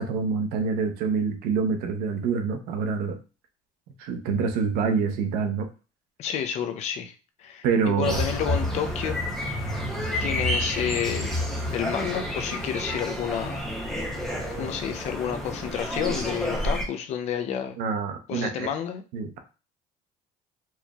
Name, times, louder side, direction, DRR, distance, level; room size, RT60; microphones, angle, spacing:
voice 1, 0.0-3.2 4.0-5.7 7.6-8.2 17.8-18.7 19.1-19.4, right 5 dB, 75° right, 6 dB, 0.8 m, -26 dB
voice 2, 6.2-9.2 10.2-11.4 11.7-13.6 14.6-17.8 18.3-19.0, left 9 dB, 45° left, 7 dB, 0.5 m, -30 dB
sound 1, 8.0-16.8, left 1 dB, 5° left, 0.7 m, -29 dB
4.5 x 2.9 x 2.3 m, 0.32 s
cardioid pair, 175°, 15 cm